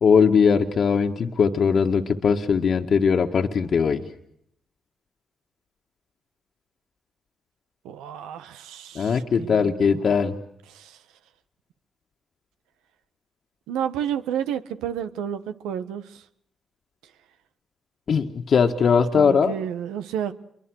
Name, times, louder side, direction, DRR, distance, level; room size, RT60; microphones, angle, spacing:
voice 1, 0.0-4.0 9.0-10.4 18.1-19.5, left 6 dB, 65° left, 4 dB, 1.8 m, -20 dB
voice 2, 7.8-9.7 10.7-11.0 13.7-16.2 19.1-20.3, right 9 dB, 85° right, 11 dB, 1.6 m, -31 dB
28.5 x 24.0 x 6.5 m, 0.73 s
supercardioid pair, 45°, 0 cm